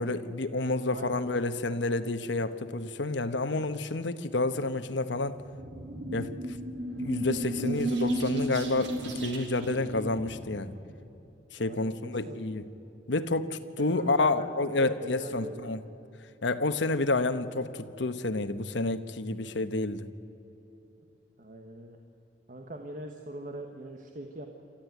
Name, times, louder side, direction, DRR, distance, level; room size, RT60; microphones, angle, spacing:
voice 1, 0.0-5.4 6.1-6.3 7.0-10.7 11.5-12.7 13.1-15.8 16.4-20.1, left 2 dB, 80° left, 10 dB, 1.1 m, -29 dB
voice 2, 0.9-1.2 7.7-7.8 11.6-12.4 14.0-14.5 14.8-15.6 21.4-22.0 22.5-24.5, right 1 dB, 45° right, 3 dB, 1.4 m, -41 dB
sound 1, 5.4-10.8, right 1 dB, 75° right, 3.2 m, -33 dB
27.5 x 13.5 x 9.4 m, 3.0 s
head